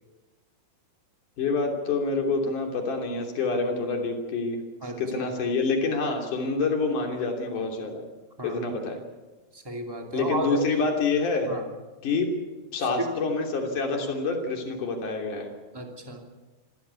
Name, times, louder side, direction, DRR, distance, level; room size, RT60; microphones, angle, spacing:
voice 1, 1.4-4.6 5.0-8.0 8.4-9.0 10.1-11.5 12.0-12.3 12.7-15.5, left 4 dB, 50° left, 2 dB, 4.3 m, -27 dB
voice 2, 4.8-5.3 8.4-8.6 9.5-10.7 11.4-11.7 12.8-13.2 15.7-16.2, right 1 dB, 10° right, 2 dB, 1.6 m, -33 dB
26.5 x 15.0 x 8.3 m, 1.2 s
omnidirectional pair, 4.8 m